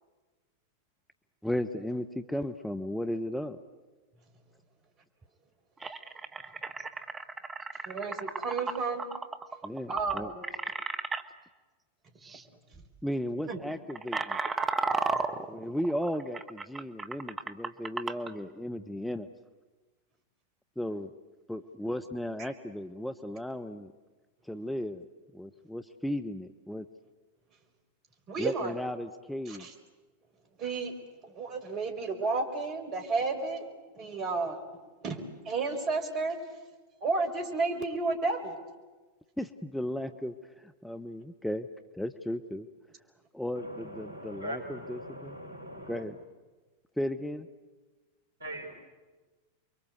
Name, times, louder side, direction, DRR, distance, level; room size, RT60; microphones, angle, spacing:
voice 1, 1.4-3.6 9.6-10.3 13.0-14.4 15.5-19.3 20.8-21.1 21.5-23.9 24.4-25.1 25.3-26.9 28.4-29.7 39.4-41.7 42.0-42.7 43.3-45.4 45.9-46.2 47.0-47.5, left 1 dB, 5° left, 8 dB, 1.0 m, -35 dB
sound 1, 5.2-5.3 5.8-11.2 12.2-12.4 12.7-13.0 13.5-18.3, right 4 dB, 15° right, 1.5 m, -34 dB
voice 2, 7.8-9.1 9.9-10.4 13.5-13.6 22.4-22.5 28.3-28.7 29.5-29.7 30.6-31.0 31.2-33.6 33.9-34.6 35.0-36.4 37.0-38.6, right 3 dB, 35° right, 5 dB, 5.1 m, -32 dB
voice 3, 44.0-45.9 48.4-48.7, equal, 75° right, 4 dB, 4.8 m, -40 dB
30.0 x 23.5 x 8.2 m, 1.3 s
figure-of-eight pair, 90°, 0 cm